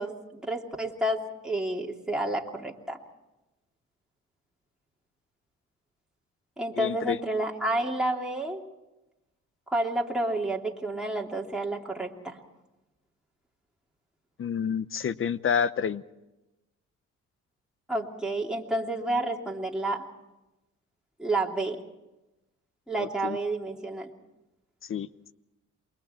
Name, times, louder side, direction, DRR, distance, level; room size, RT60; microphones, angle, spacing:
voice 1, 0.0-3.0 6.6-8.6 9.7-12.4 17.9-20.1 21.2-21.8 22.9-24.1, right 1 dB, ahead, -1 dB, 2.9 m, -30 dB
voice 2, 6.8-7.2 14.4-16.0 23.0-23.4 24.9-25.1, left 7 dB, 45° left, 16 dB, 0.9 m, -29 dB
28.5 x 22.5 x 4.5 m, 0.98 s
cardioid pair, 90°, 30 cm